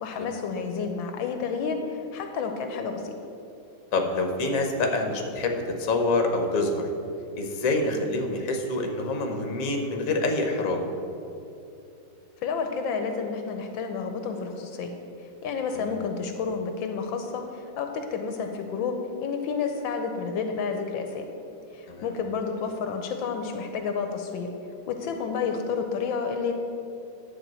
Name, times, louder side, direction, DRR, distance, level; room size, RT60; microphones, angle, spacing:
voice 1, 0.0-3.1 12.4-19.0 19.2-21.3 21.7-24.5 24.9-26.6, left 5 dB, 80° left, 5 dB, 1.4 m, -30 dB
voice 2, 3.9-6.8 7.4-10.8 15.7-15.9 21.9-22.1, left 2 dB, 50° left, 4 dB, 1.3 m, -26 dB
10.5 x 4.7 x 7.5 m, 2.6 s
omnidirectional pair, 2.1 m